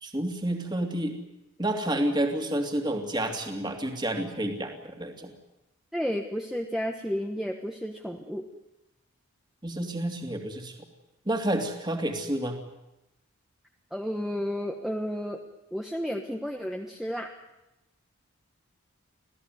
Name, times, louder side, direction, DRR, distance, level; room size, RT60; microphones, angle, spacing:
voice 1, 0.0-1.2 1.6-5.3 9.6-10.8 11.3-12.6, right 1 dB, 20° right, 3 dB, 2.8 m, -29 dB
voice 2, 5.9-8.5 13.9-15.4 15.7-17.3, equal, ahead, 2 dB, 1.4 m, -32 dB
27.0 x 17.0 x 9.5 m, 0.94 s
head